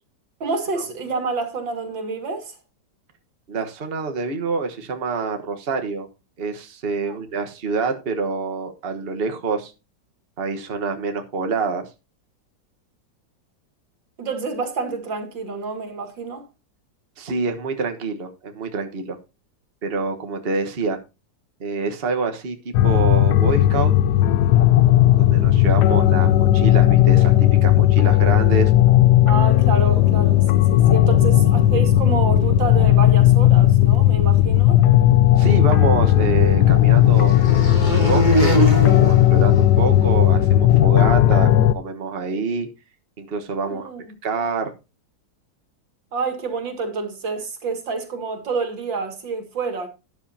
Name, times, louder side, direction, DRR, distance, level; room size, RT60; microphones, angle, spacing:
voice 1, 0.4-2.6 7.0-7.2 14.2-16.5 29.3-34.8 43.6-44.1 46.1-49.9, right 4 dB, 85° right, 2.8 m, -28 dB
voice 2, 3.5-6.1 6.4-9.7 10.4-11.9 17.2-19.2 19.8-21.0 21.6-23.9 25.2-28.7 35.4-37.5 37.8-42.7 43.2-43.9 44.2-44.7, right 4 dB, 35° right, 1.4 m, -26 dB
sound 1, 22.7-41.7, left 13 dB, 70° left, 1.2 m, -15 dB
sound 2, 35.5-40.2, right 2 dB, 25° left, 2.8 m, -25 dB
12.5 x 10.5 x 2.8 m
omnidirectional pair, 2.0 m